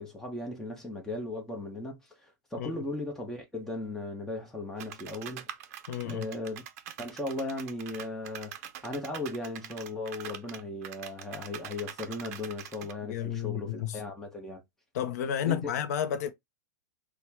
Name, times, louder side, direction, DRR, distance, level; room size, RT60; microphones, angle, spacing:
voice 1, 0.0-5.5 6.0-6.6 7.0-14.6 15.4-15.7, left 2 dB, 5° left, 0.9 m, -37 dB
sound 1, 4.8-12.9, right 10 dB, 55° right, 0.6 m, -44 dB
voice 2, 5.9-6.3 13.1-14.0 14.9-16.3, left 9 dB, 60° left, 0.6 m, -31 dB
4.3 x 2.2 x 3.4 m
supercardioid pair, 155°, 10 cm